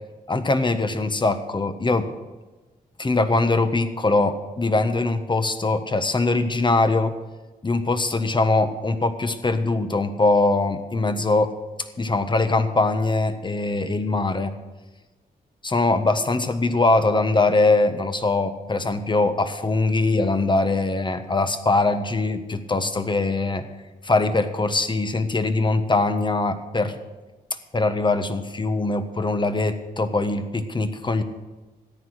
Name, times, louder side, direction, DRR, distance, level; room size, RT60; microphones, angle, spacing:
voice 1, 0.3-2.1 3.0-7.1 7.6-11.5 12.0-14.5 15.6-23.6 24.0-27.0 27.7-31.2, left 2 dB, 30° left, 9 dB, 1.4 m, -22 dB
14.0 x 9.7 x 6.4 m, 1.2 s
cardioid pair, 60°, 17 cm